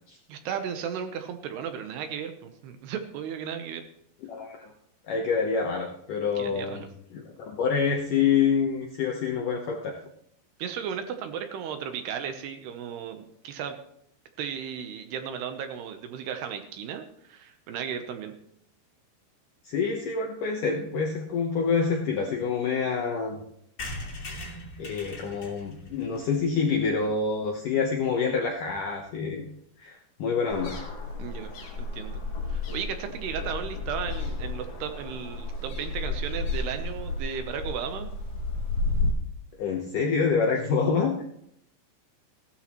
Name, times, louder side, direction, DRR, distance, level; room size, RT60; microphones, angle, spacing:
voice 1, 0.3-3.8 6.4-6.9 10.6-13.8 14.4-18.3 31.2-31.5 31.8-32.2 32.5-38.1 40.6-40.7, right 8 dB, 75° right, 7 dB, 2.7 m, -35 dB
voice 2, 4.2-4.7 5.1-6.8 7.1-10.0 19.6-23.4 24.8-29.5 29.8-30.8 39.6-41.2, left 5 dB, 70° left, 0 dB, 2.0 m, -27 dB
sound 1, 23.8-27.5 27.9-28.0 28.2-28.3 28.5-28.6 28.8-29.0, left 1 dB, 25° left, 2.5 m, -41 dB
sound 2, 30.5-39.1, left 3 dB, 50° left, 3.0 m, -32 dB
16.0 x 12.5 x 3.0 m, 0.72 s
omnidirectional pair, 5.2 m